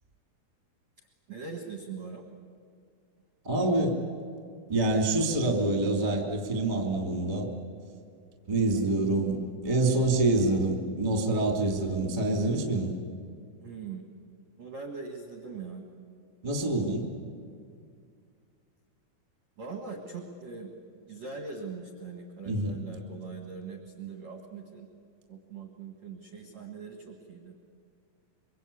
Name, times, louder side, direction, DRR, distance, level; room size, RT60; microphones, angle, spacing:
voice 1, 1.3-2.2 13.6-14.0 14.6-15.8 19.6-24.9 25.3-27.6, right 4 dB, 65° right, 3 dB, 1.7 m, -41 dB
voice 2, 3.4-4.0 4.7-7.5 8.5-12.9 16.4-17.1 22.4-22.8, right 2 dB, 20° right, 2 dB, 1.1 m, -26 dB
26.0 x 23.5 x 8.5 m, 2.2 s
omnidirectional pair, 6.0 m